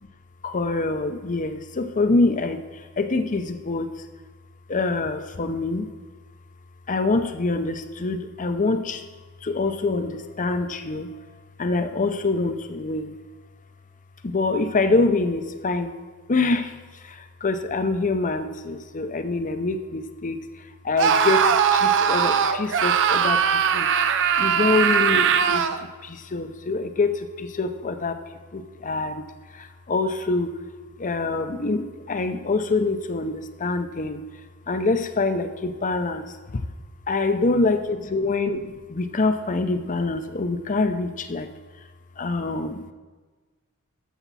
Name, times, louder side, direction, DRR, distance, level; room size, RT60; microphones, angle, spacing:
voice 1, 0.4-3.9 4.7-5.9 6.9-9.0 9.4-11.1 11.6-13.2 14.2-15.9 16.3-28.2 28.5-29.3 29.5-30.5 31.0-34.2 34.7-36.6 37.1-41.5 42.2-42.9, left 3 dB, 35° left, 9 dB, 0.7 m, -25 dB
Screaming, 21.0-25.8, right 7 dB, 55° right, 0.6 m, -20 dB
13.0 x 7.2 x 4.2 m, 1.3 s
head